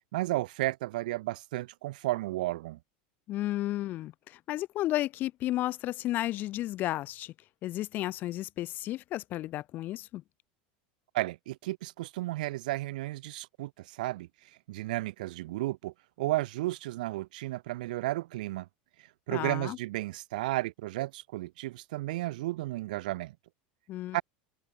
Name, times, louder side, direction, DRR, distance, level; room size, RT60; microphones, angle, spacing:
voice 1, 0.1-2.8 11.1-14.3 14.7-18.7 19.3-23.4 24.1-24.2, right 17 dB, 80° right, 3.9 m, -33 dB
voice 2, 3.3-7.3 7.6-10.2 19.3-19.8 23.9-24.2, left 15 dB, 45° left, 3.3 m, -33 dB
supercardioid pair, 130°, 4 cm